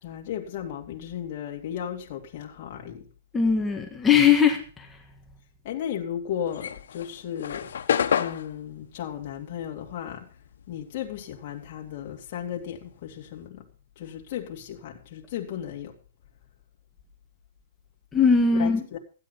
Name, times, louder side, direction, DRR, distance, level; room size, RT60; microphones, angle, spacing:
voice 1, 0.0-3.1 5.6-7.8 8.2-10.3 10.7-13.7 14.0-15.9 18.5-19.0, left 9 dB, 35° left, 2.6 m, -35 dB
voice 2, 3.3-4.9 18.1-18.8, left 6 dB, 10° left, 1.5 m, -20 dB
sound 1, 6.5-11.2 11.5-13.5, left 8 dB, 80° left, 1.2 m, -30 dB
16.0 x 10.0 x 5.8 m
hypercardioid pair, 170°, 0 cm